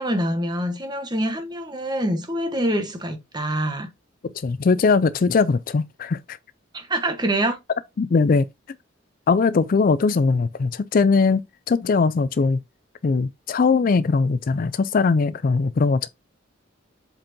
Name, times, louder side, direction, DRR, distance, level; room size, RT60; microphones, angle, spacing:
voice 1, 0.0-3.9 6.7-7.6, right 1 dB, 20° right, 1.2 m, -25 dB
voice 2, 4.4-6.4 8.0-8.5 9.3-11.4 11.7-12.6 13.0-16.1, left 4 dB, 45° left, 0.4 m, -20 dB
7.8 x 4.4 x 2.8 m
head